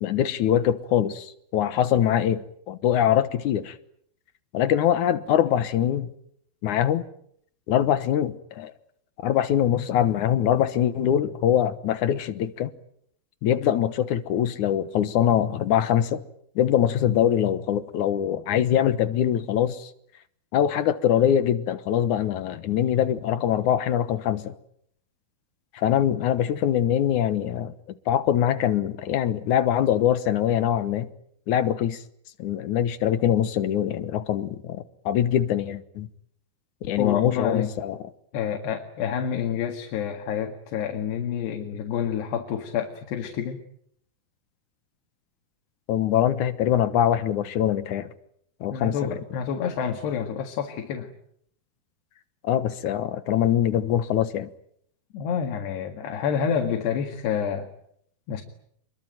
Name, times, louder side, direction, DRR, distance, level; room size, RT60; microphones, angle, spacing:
voice 1, 0.0-3.8 4.5-6.1 6.6-7.1 7.7-8.7 9.2-12.7 13.4-16.2 16.6-19.9 20.5-24.5 25.7-27.7 28.1-31.1 31.5-32.0 32.4-36.1 36.8-38.0 45.9-48.1 48.6-49.2 52.4-54.5, left 10 dB, 65° left, 2.2 m, -23 dB
voice 2, 37.0-37.7 38.3-43.6 48.7-51.1 55.1-57.7 58.3-58.4, left 8 dB, 90° left, 4.0 m, -28 dB
26.0 x 22.5 x 9.2 m
omnidirectional pair, 4.6 m